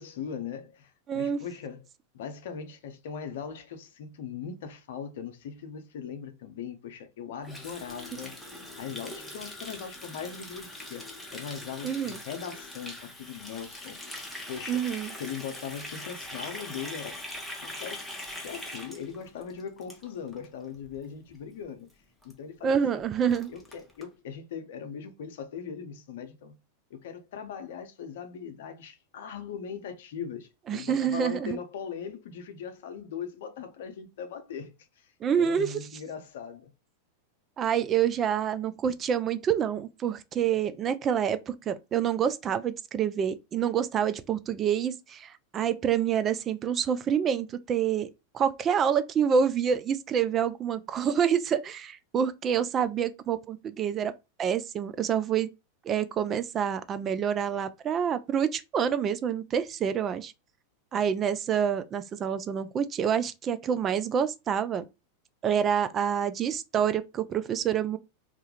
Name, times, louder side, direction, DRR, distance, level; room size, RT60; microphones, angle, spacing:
voice 1, 0.0-1.8 2.1-8.3 8.7-14.0 14.5-14.8 15.2-17.2 17.6-18.0 18.4-21.9 22.2-22.8 23.5-26.6 26.9-35.1 35.3-36.7, left 7 dB, 70° left, 0.6 m, -39 dB
voice 2, 1.1-1.4 11.8-12.2 14.7-15.1 22.6-23.5 30.7-31.6 35.2-35.7 37.6-48.1 48.3-54.1 54.4-55.5 55.9-60.3 60.9-64.8 65.4-68.0, right 8 dB, 30° right, 0.3 m, -27 dB
Water tap faucet, 7.4-20.4 20.7-21.0 21.3-21.6 21.9-22.0 22.2-22.3 22.7-22.8 23.0-24.0, left 1 dB, 5° left, 0.8 m, -42 dB
2.3 x 2.1 x 2.9 m
hypercardioid pair, 100°, 0 cm